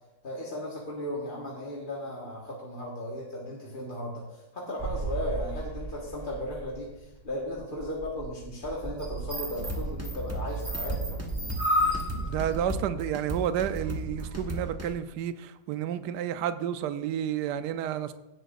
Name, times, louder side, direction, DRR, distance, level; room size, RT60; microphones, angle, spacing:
voice 1, 0.2-11.1, left 1 dB, 30° left, -4 dB, 1.5 m, -36 dB
sound 1, 4.8-6.9 7.5-12.6, equal, 30° right, 3.7 m, -32 dB
sound 2, 9.6-14.9, right 1 dB, 10° right, 0.9 m, -35 dB
voice 2, 12.1-18.1, right 10 dB, 80° right, 11 dB, 1.2 m, -31 dB
16.5 x 9.0 x 2.5 m, 0.98 s
omnidirectional pair, 1.8 m